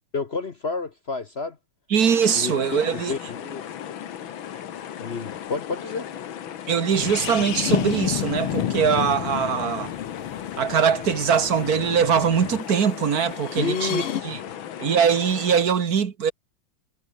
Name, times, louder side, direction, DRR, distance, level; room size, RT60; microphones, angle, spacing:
voice 1, 0.1-1.6 2.3-2.5 2.9-3.6 5.0-6.1 13.6-14.4, left 4 dB, 40° left, 0.9 m, -30 dB
voice 2, 1.9-3.1 6.7-9.9 10.6-14.4 14.8-16.3, right 7 dB, 45° right, 1.9 m, -22 dB
sound 1, 2.0-15.7, left 9 dB, 70° left, 2.0 m, -37 dB
sound 2, 6.9-12.6 13.4-14.2, left 11 dB, 85° left, 2.2 m, -30 dB
omnidirectional pair, 2.4 m